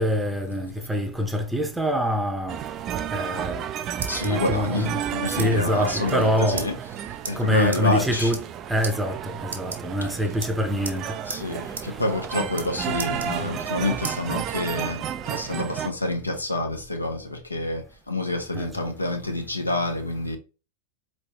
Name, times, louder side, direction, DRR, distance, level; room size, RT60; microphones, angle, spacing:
voice 1, 0.0-2.6 3.1-3.7 4.2-5.0 5.3-6.7 7.4-8.4 8.7-11.2 18.5-18.7, equal, 5° right, 0.7 m, -25 dB
sound 1, 2.5-15.9, right 9 dB, 30° right, 0.3 m, -32 dB
sound 2, 3.7-4.4 5.0-5.5 5.8-5.9 6.0-6.2 6.6-6.7 7.2-7.3 7.7-7.8 8.2-8.6 8.8-8.9 9.4-10.1 10.4-11.0 11.3-11.4 11.8-11.9 12.2-12.7 13.0-13.7 14.0-14.2 14.7-15.5, right 4 dB, 70° right, 0.9 m, -35 dB
voice 2, 4.1-6.8 7.2-8.3 11.3-20.4, left 2 dB, 85° left, 0.8 m, -28 dB
4.4 x 3.2 x 2.9 m
figure-of-eight pair, 90°, 0 cm